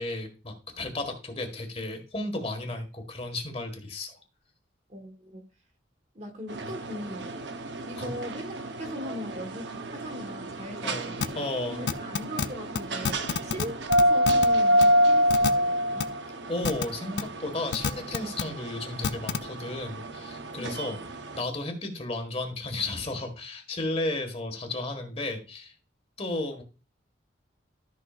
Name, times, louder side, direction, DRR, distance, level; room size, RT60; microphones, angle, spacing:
voice 1, 0.0-4.1 8.0-8.1 10.8-11.1 11.3-11.8 16.5-21.0 21.3-25.7 26.2-26.6, left 2 dB, 30° left, 1.8 m, -33 dB
voice 2, 4.9-5.4 6.1-7.5 7.9-11.4 11.7-13.8 14.1-16.1 20.6-21.0, equal, 40° right, 1.5 m, -40 dB
sound 1, 6.5-21.4, equal, 70° right, 0.9 m, -28 dB
sound 2, 11.2-11.3 11.9-12.5 12.7-12.8 13.0-13.6 13.9-14.5 14.8-14.9 15.3-15.5 16.0-16.1 16.6-16.8 17.2-17.3 17.7-18.4 19.0-19.4, left 6 dB, 70° left, 0.5 m, -27 dB
13.5 x 6.0 x 2.5 m
head